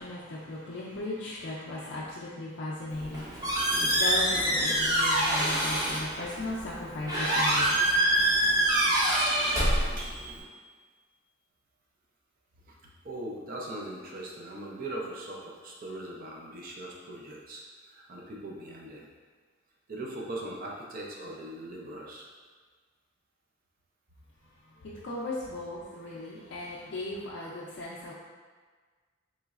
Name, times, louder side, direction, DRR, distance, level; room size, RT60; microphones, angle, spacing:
voice 1, 0.0-7.8 24.6-28.1, left 2 dB, 60° left, -6 dB, 0.4 m, -37 dB
Squeak, 2.9-10.4, right 1 dB, 20° right, 0.8 m, -26 dB
sound 1, 10.0-11.1, right 2 dB, 80° right, 0.9 m, -47 dB
voice 2, 13.0-19.1 19.9-22.3, right 1 dB, 45° right, -2 dB, 0.5 m, -40 dB
3.8 x 3.0 x 2.4 m, 1.5 s
head